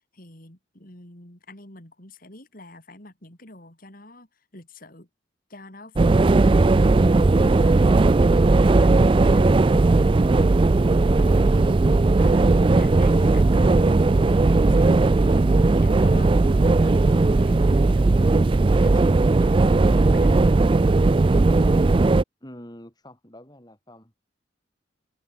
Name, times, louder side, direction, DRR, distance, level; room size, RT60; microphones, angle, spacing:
voice 1, 0.0-5.1 5.5-6.4 6.7-10.5 11.2-11.7 12.2-12.5 12.8-18.3 18.8-20.5, left 2 dB, 45° left, 4.3 m, -46 dB
sound 1, 6.0-22.2, right 3 dB, 25° right, 0.4 m, -17 dB
voice 2, 22.4-24.2, equal, 20° left, 4.0 m, -46 dB
head